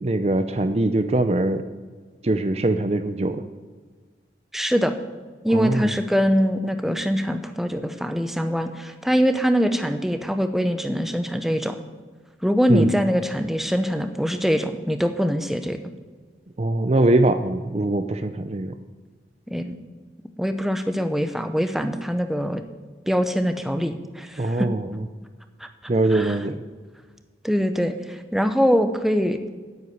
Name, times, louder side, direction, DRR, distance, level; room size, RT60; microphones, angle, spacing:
voice 1, 0.0-1.6 2.2-3.4 5.5-5.9 12.7-12.9 16.6-18.7 24.4-24.9 25.9-26.6, right 2 dB, 35° right, 9 dB, 0.5 m, -22 dB
voice 2, 4.5-4.9 5.4-11.8 12.4-15.8 19.5-19.8 20.4-22.6 23.1-24.7 25.6-25.7 26.1-26.4 27.4-29.5, equal, ahead, 7 dB, 0.8 m, -23 dB
9.8 x 8.1 x 9.5 m, 1.5 s
head